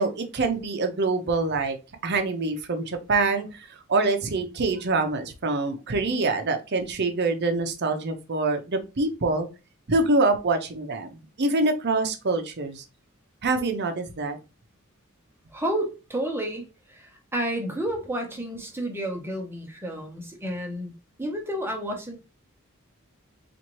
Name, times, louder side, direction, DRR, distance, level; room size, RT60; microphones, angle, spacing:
voice 1, 0.0-1.8 2.0-3.5 3.9-9.5 9.9-12.8 13.4-14.4, right 3 dB, 50° right, 0.7 m, -25 dB
voice 2, 15.5-20.9 21.2-22.2, right 1 dB, 10° right, 0.9 m, -31 dB
4.2 x 2.6 x 3.0 m
head